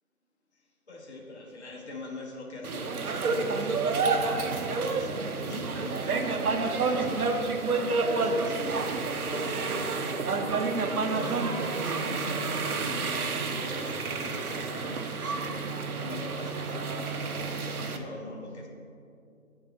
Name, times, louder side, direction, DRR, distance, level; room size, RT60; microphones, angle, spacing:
voice 1, 0.9-18.7, left 2 dB, 50° left, 0 dB, 0.9 m, -43 dB
sound 1, 2.6-18.0, right 4 dB, 90° right, 0.7 m, -29 dB
9.4 x 3.6 x 4.0 m, 2.6 s
figure-of-eight pair, 175°, 43 cm